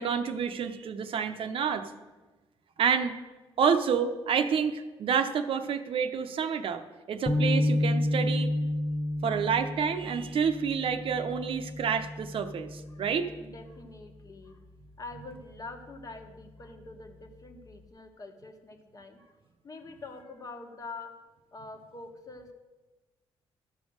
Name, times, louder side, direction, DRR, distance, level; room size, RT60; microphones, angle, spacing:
voice 1, 0.0-1.9 2.8-3.2 3.6-6.8 7.1-8.5 9.2-13.3, right 6 dB, 65° right, 8 dB, 0.8 m, -28 dB
sound 1, 7.3-13.7, left 1 dB, 15° left, 1.0 m, -31 dB
voice 2, 13.4-14.6 15.0-19.4 19.6-21.1 21.5-22.5, left 3 dB, 35° left, 5 dB, 1.4 m, -45 dB
13.0 x 5.4 x 6.4 m, 1.2 s
cardioid pair, 90°, 10 cm